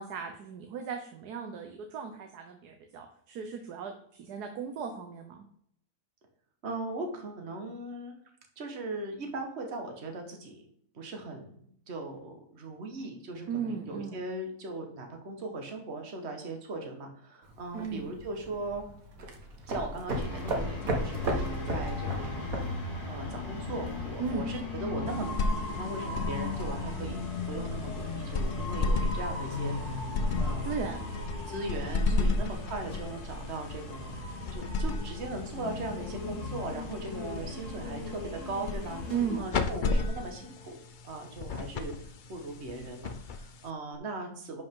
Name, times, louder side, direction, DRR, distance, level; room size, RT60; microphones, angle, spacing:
voice 1, 0.0-5.5 13.5-14.2 17.7-18.1 24.2-24.5 30.6-31.1 32.1-32.4 39.1-39.4, right 6 dB, 80° right, 5 dB, 1.4 m, -36 dB
voice 2, 6.6-8.2 8.6-10.6 10.9-18.9 19.6-22.8 23.1-29.9 30.4-30.9 31.4-40.8 41.0-44.6, right 2 dB, 45° right, 3 dB, 1.6 m, -39 dB
sound 1, 17.4-24.3, right 1 dB, 60° right, 1.8 m, -36 dB
sound 2, 20.1-39.4, left 3 dB, 50° left, 2.6 m, -37 dB
sound 3, 25.1-43.9, left 3 dB, 85° left, 0.4 m, -34 dB
11.0 x 5.1 x 3.7 m, 0.66 s
omnidirectional pair, 1.7 m